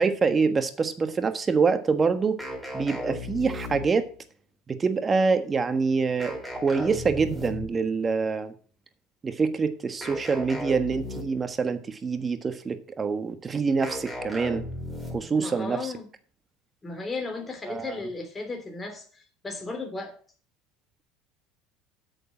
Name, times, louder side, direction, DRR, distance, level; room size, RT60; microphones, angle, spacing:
voice 1, 0.0-2.4 2.7-4.1 4.7-8.5 9.2-14.7 15.1-15.9 17.7-17.9, right 4 dB, 25° right, 9 dB, 1.4 m, -25 dB
sound 1, 2.4-4.2 6.2-7.9 10.0-11.5 13.8-15.4, left 1 dB, 5° right, 4.3 m, -36 dB
voice 2, 15.3-16.1 16.8-20.1, left 3 dB, 20° left, 3 dB, 3.0 m, -35 dB
8.8 x 6.6 x 6.2 m, 0.43 s
supercardioid pair, 90°, 0 cm